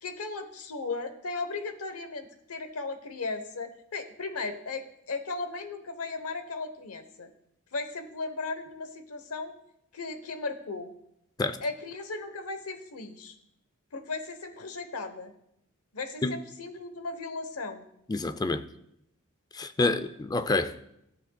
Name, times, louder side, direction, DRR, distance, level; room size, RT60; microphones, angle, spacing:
voice 1, 0.0-7.3 7.7-9.5 9.9-10.9 11.6-13.3 13.9-15.3 15.9-17.8 19.8-19.9, left 3 dB, 90° left, 0.9 m, -36 dB
voice 2, 18.1-18.6 19.5-20.8, left 3 dB, 20° left, 0.4 m, -28 dB
14.0 x 7.8 x 2.3 m
head